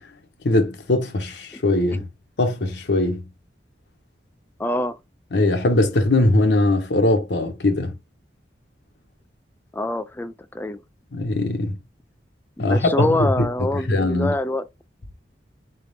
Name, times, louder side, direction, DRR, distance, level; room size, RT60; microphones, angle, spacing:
voice 1, 0.4-2.1 2.4-3.2 5.3-7.9 11.1-11.8 12.6-13.5 13.9-14.4, left 2 dB, 70° left, 0.9 m, -20 dB
voice 2, 4.6-5.0 9.7-10.8 12.6-14.7, left 1 dB, 10° left, 0.3 m, -25 dB
3.9 x 3.5 x 2.6 m
head